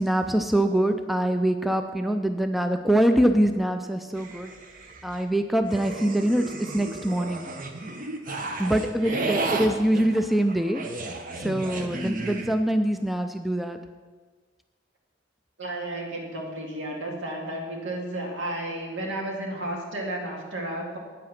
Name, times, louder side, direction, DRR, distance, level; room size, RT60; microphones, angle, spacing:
voice 1, 0.0-4.5 5.0-7.5 8.6-10.8 11.4-13.8, right 1 dB, ahead, 7 dB, 0.4 m, -24 dB
sound 1, 4.2-5.2 5.7-12.5, right 2 dB, 45° right, 0.9 m, -33 dB
voice 2, 9.0-9.3 15.6-21.0, right 1 dB, 75° right, 0 dB, 2.1 m, -33 dB
9.1 x 7.7 x 5.8 m, 1.4 s
head